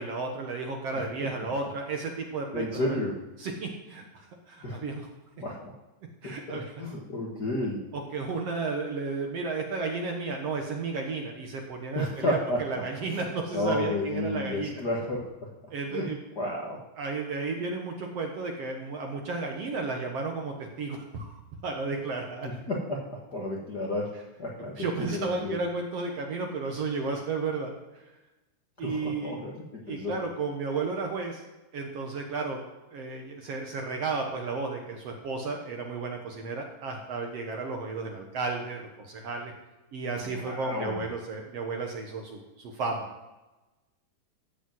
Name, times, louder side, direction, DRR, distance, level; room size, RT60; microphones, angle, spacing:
voice 1, 0.0-3.0 3.4-5.0 6.2-6.6 7.9-14.7 15.7-16.2 17.0-22.5 24.8-27.7 28.8-29.4 29.9-31.4 31.7-32.6 32.9-39.5 39.9-43.1, right 4 dB, 60° right, 2 dB, 1.8 m, -33 dB
voice 2, 2.5-3.2 4.6-4.8 5.4-5.7 6.2-7.8 11.9-13.2 13.5-16.8 22.4-24.1 24.4-25.6 28.8-30.2 40.2-41.0, left 1 dB, 50° left, -3 dB, 1.3 m, -32 dB
14.5 x 5.0 x 7.7 m, 1.1 s
omnidirectional pair, 3.9 m